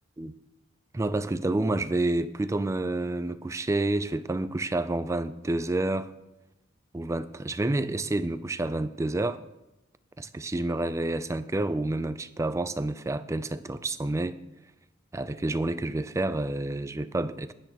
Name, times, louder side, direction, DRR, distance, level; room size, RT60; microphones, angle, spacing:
voice 1, 0.9-6.1 6.9-9.4 10.2-14.4 15.1-17.5, right 2 dB, 15° right, 13 dB, 0.3 m, -29 dB
15.0 x 10.5 x 3.0 m, 0.94 s
head